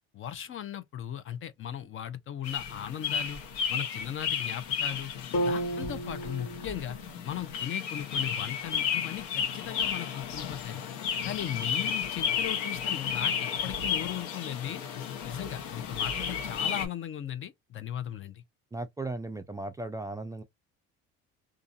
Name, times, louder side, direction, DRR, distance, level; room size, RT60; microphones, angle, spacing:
voice 1, 0.1-3.4 3.7-5.1 5.4-7.0 7.2-10.9 11.2-14.8 15.3-18.4, left 10 dB, 40° left, 0.6 m, -37 dB
sound 1, 2.4-16.9, left 7 dB, 80° left, 0.9 m, -33 dB
sound 2, 5.3-9.4, right 1 dB, 60° left, 1.5 m, -36 dB
voice 2, 18.7-20.4, right 2 dB, 10° right, 0.3 m, -36 dB
2.5 x 2.4 x 2.6 m
supercardioid pair, 95°, 31 cm